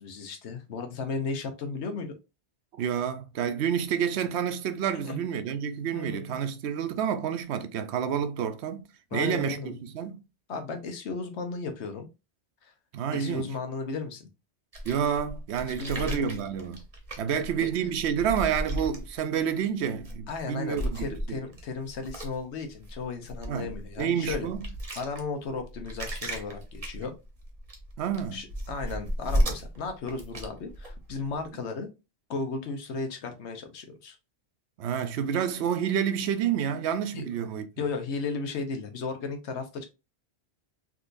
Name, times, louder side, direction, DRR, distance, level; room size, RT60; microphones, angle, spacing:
voice 1, 0.0-2.1 5.0-5.2 5.9-6.4 9.1-9.7 10.5-12.1 12.6-12.7 13.1-14.3 15.6-16.3 17.3-17.7 20.3-24.5 25.0-27.1 28.3-31.9 32.3-34.2 37.1-37.2 37.8-39.9, left 4 dB, 85° left, 1.1 m, -35 dB
voice 2, 2.8-8.8 9.1-10.2 12.9-13.5 14.8-16.8 17.2-21.4 23.5-24.7 28.0-28.4 34.8-37.7, right 8 dB, 75° right, 0.8 m, -29 dB
sound 1, 14.7-19.5 19.9-20.4 20.7-31.5, equal, 35° right, 0.9 m, -34 dB
3.7 x 2.8 x 2.5 m
omnidirectional pair, 1.1 m